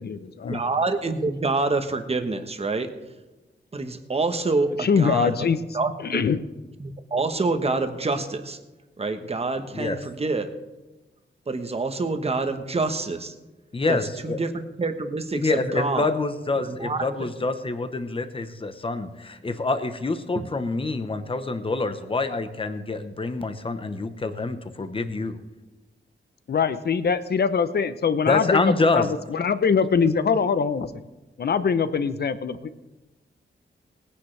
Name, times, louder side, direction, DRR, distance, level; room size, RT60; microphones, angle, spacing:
voice 1, 0.0-0.6 4.8-5.6 6.0-6.4 26.5-30.9 31.4-32.8, left 6 dB, 55° left, 13 dB, 0.7 m, -23 dB
voice 2, 0.5-2.9 3.7-5.3 5.7-6.2 6.8-8.6 9.0-10.5 11.5-13.3 13.9-14.0 14.2-16.1 16.6-17.0 20.3-20.5, right 3 dB, 30° right, 7 dB, 1.1 m, -26 dB
voice 3, 13.7-14.4 15.3-25.4 28.3-29.1, left 3 dB, 30° left, 9 dB, 0.9 m, -26 dB
19.5 x 10.0 x 3.3 m, 1.1 s
wide cardioid pair, 145°, 20 cm